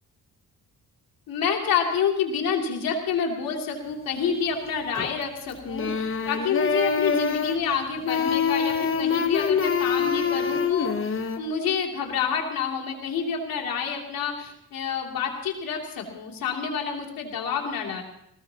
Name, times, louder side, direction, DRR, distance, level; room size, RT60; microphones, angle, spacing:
voice 1, 1.3-18.0, left 6 dB, 90° left, 0 dB, 3.0 m, -28 dB
sound 1, 4.9-5.4 5.6-7.7 8.0-11.4, left 6 dB, 40° left, 1.1 m, -25 dB
20.5 x 18.5 x 3.0 m, 0.75 s
cardioid pair, 140°, 34 cm